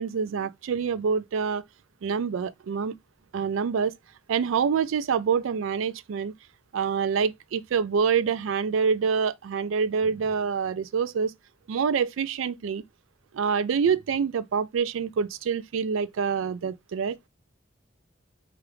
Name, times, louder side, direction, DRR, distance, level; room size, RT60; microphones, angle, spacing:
voice 1, 0.0-1.6 2.0-2.9 3.3-3.9 4.3-6.3 6.7-11.3 11.7-12.8 13.3-17.2, right 6 dB, 85° right, 0.3 m, -26 dB
4.8 x 2.5 x 3.0 m
head